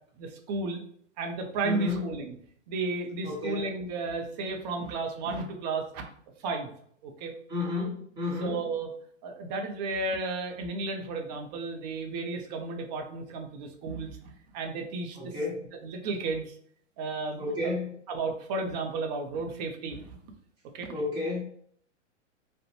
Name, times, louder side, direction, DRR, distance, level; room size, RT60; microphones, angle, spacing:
voice 1, 0.2-0.8 1.2-2.4 2.7-6.1 6.4-6.7 7.0-7.3 8.4-8.9 9.2-15.3 15.8-16.6 17.0-17.7 18.1-20.2 20.7-20.9, right 3 dB, 35° right, 4 dB, 0.4 m, -33 dB
voice 2, 1.6-2.1 3.2-3.7 7.5-8.6 15.2-15.6 17.4-17.9 20.9-21.4, left 3 dB, 10° right, -9 dB, 1.0 m, -31 dB
2.4 x 2.1 x 2.8 m, 0.63 s
hypercardioid pair, 120°, 38 cm